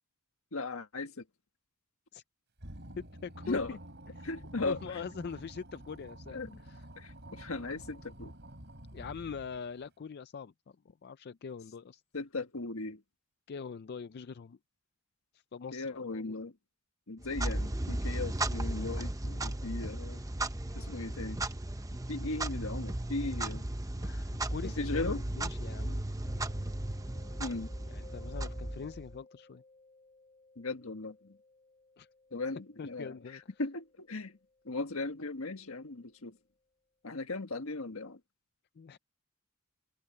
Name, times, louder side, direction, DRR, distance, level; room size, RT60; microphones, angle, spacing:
voice 1, 0.5-1.2 3.5-3.8 4.2-5.0 6.3-6.6 7.0-8.3 12.1-13.0 15.7-16.5 17.1-20.2 20.7-21.4 22.1-23.6 24.6-25.2 27.4-27.7 30.6-31.4 32.3-33.2 33.6-34.4 34.6-36.4 37.0-38.2, left 3 dB, 75° left, 1.6 m, -37 dB
sound 1, 2.6-9.8, right 1 dB, 55° right, 6.2 m, -49 dB
voice 2, 3.0-3.8 4.1-4.3 4.6-6.9 8.9-10.8 11.0-12.0 13.5-14.6 15.3-16.4 24.0-26.7 27.9-29.6 32.0-32.1 32.8-33.4 38.8-39.0, left 5 dB, 50° left, 0.4 m, -43 dB
Clock, 17.2-29.2, right 1 dB, 15° right, 0.8 m, -36 dB
Mallet percussion, 26.3-35.8, left 2 dB, 30° left, 5.4 m, -59 dB
head